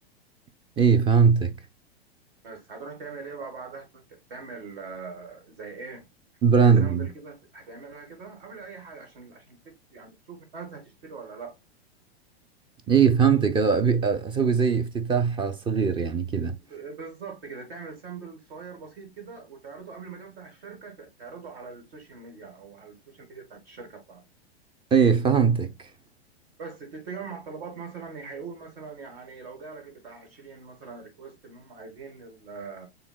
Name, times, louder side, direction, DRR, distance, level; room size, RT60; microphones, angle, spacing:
voice 1, 0.8-1.5 6.4-7.1 12.9-16.6 24.9-25.7, right 6 dB, 15° right, 0.4 m, -21 dB
voice 2, 2.4-6.1 6.6-11.6 16.7-24.2 26.6-32.9, right 5 dB, 60° right, 2.1 m, -42 dB
6.9 x 2.4 x 2.2 m
hypercardioid pair, 100°, 32 cm